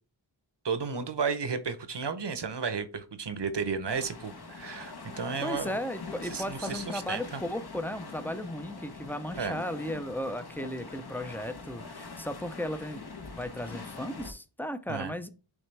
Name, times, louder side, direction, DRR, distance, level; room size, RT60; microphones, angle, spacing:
voice 1, 0.6-5.8 6.3-7.4 9.3-9.6 14.9-15.1, right 5 dB, 60° right, 10 dB, 0.9 m, -33 dB
sound 1, 3.9-14.3, left 4 dB, 55° left, 1.0 m, -43 dB
voice 2, 5.4-13.1 13.4-15.3, equal, 5° left, 10 dB, 0.5 m, -35 dB
8.9 x 3.3 x 3.3 m, 0.34 s
wide cardioid pair, 70°, 48 cm